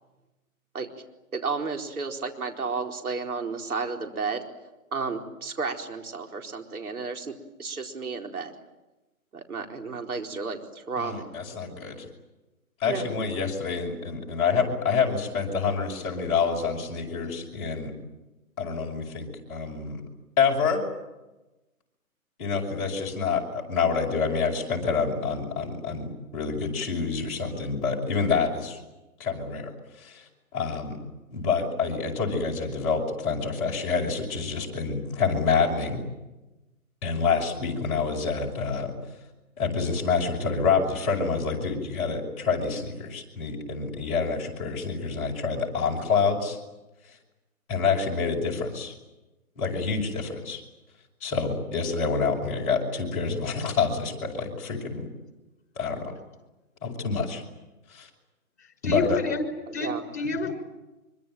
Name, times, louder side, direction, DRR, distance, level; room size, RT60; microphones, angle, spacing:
voice 1, 1.3-4.4 4.9-8.5 9.3-11.3 12.8-13.0 59.7-60.1, right 4 dB, 80° right, 3 dB, 4.5 m, -32 dB
voice 2, 11.0-12.1 12.8-17.9 18.6-20.0 20.4-20.8 22.4-28.8 29.2-29.7 30.0-31.0 31.3-36.0 37.0-38.9 39.6-46.6 47.7-48.9 49.6-50.6 51.2-55.1 55.8-56.1 56.8-57.4 57.9-58.1 58.8-59.2, left 5 dB, 25° left, -1 dB, 5.8 m, -27 dB
voice 3, 58.8-59.5 59.7-59.9 60.1-60.5, left 3 dB, 45° left, 7 dB, 5.8 m, -28 dB
25.5 x 24.5 x 9.2 m, 1.0 s
hypercardioid pair, 165°, 44 cm